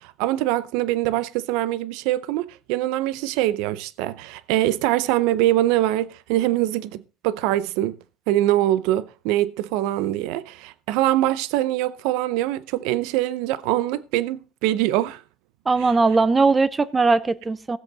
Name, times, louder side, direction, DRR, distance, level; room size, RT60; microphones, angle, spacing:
voice 1, 0.0-7.9 8.3-15.2 15.8-15.9, right 14 dB, 75° right, 0.6 m, -23 dB
voice 2, 15.7-17.8, right 3 dB, 15° right, 0.6 m, -19 dB
17.5 x 7.7 x 3.9 m
cardioid pair, 160°, 0 cm